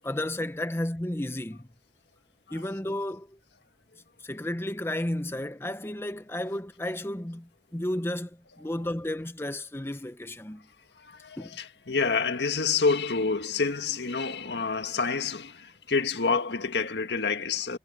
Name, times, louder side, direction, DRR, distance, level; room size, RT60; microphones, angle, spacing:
voice 1, 0.0-1.7 2.5-3.4 4.2-10.7 11.4-11.5, left 1 dB, 15° left, 0.7 m, -33 dB
voice 2, 11.0-17.8, left 4 dB, 80° left, 1.8 m, -28 dB
head